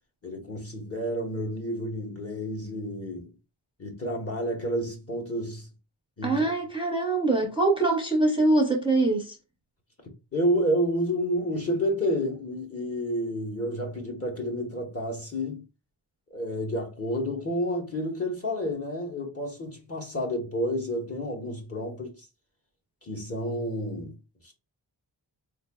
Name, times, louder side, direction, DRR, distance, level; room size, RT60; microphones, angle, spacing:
voice 1, 0.2-3.3 3.8-5.7 6.2-6.4 10.3-15.6 16.3-22.3 23.0-24.1 24.4-24.5, equal, 30° left, 1.1 m, -30 dB
voice 2, 6.2-9.4, right 2 dB, 10° right, 0.6 m, -23 dB
4.0 x 3.2 x 2.2 m
wide cardioid pair, 115°, 46 cm